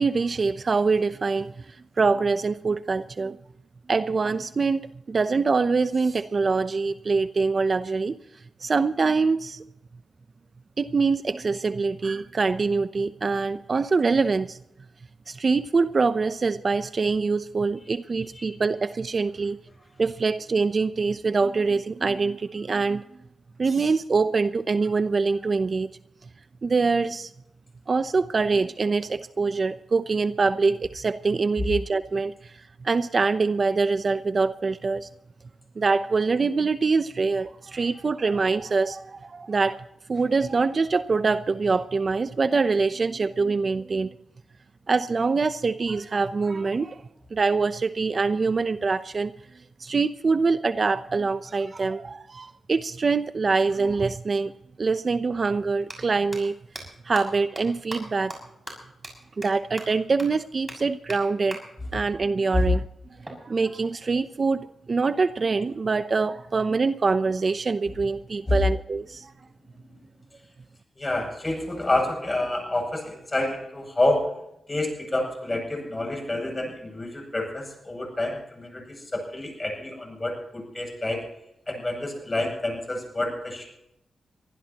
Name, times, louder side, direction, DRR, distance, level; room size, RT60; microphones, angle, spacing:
voice 1, 0.0-3.4 3.9-8.2 8.6-9.6 10.8-14.6 15.3-19.6 20.0-23.0 23.6-25.9 26.6-27.3 27.9-35.1 35.8-39.8 40.1-44.1 44.9-47.0 47.3-49.3 49.8-54.5 54.8-56.5 57.0-58.4 59.4-61.6 61.9-62.8 63.4-69.3, right 4 dB, 45° right, 12 dB, 0.7 m, -24 dB
sound 1, 54.6-54.7 55.7-55.9 56.3-56.4 56.7-56.8 57.1-57.2 57.6-57.7 57.9-58.0 58.3-58.4 58.7-58.8 59.0-59.1 59.4-59.5 59.8-59.9 60.2-60.3 60.7-60.8 61.1-61.2 61.5-61.6 63.2-64.3, right 1 dB, 15° right, 6.6 m, -38 dB
voice 2, 71.0-74.3 74.7-81.2 81.7-83.7, left 2 dB, 25° left, 1 dB, 8.0 m, -28 dB
23.5 x 15.5 x 3.0 m, 0.79 s
cardioid pair, 75°, 0 cm